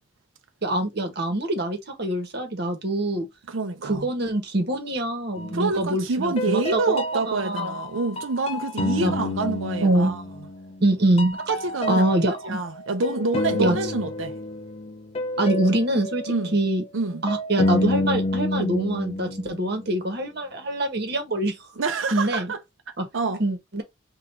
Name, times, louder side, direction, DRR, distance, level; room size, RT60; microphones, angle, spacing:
voice 1, 0.6-3.3 3.8-7.8 9.0-9.1 9.8-10.2 10.8-11.4 11.9-12.6 13.1-13.2 13.6-13.8 15.4-16.8 17.2-21.7 22.1-22.5 23.0-23.1 23.4-23.8, right 1 dB, 55° right, 1.4 m, -24 dB
voice 2, 3.5-4.1 5.5-10.2 11.5-12.0 12.4-14.3 16.3-16.6 16.9-17.2 21.8-22.6 23.1-23.4, right 3 dB, 80° right, 0.7 m, -27 dB
sound 1, 5.4-5.9 6.4-10.9 11.2-19.9, left 1 dB, 30° left, 0.6 m, -29 dB
3.9 x 2.6 x 4.5 m
head